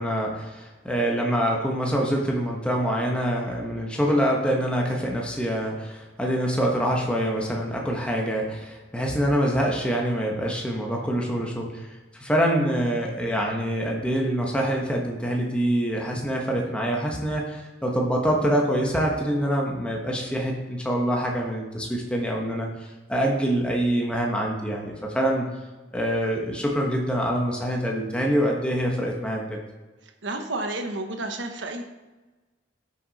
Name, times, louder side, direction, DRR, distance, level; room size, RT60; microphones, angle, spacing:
voice 1, 0.0-11.9 12.2-22.7 23.1-25.5 25.9-29.6, equal, 5° left, -1 dB, 1.2 m, -25 dB
voice 2, 30.2-31.8, right 2 dB, 75° right, 5 dB, 1.2 m, -31 dB
13.5 x 6.3 x 4.2 m, 1.2 s
head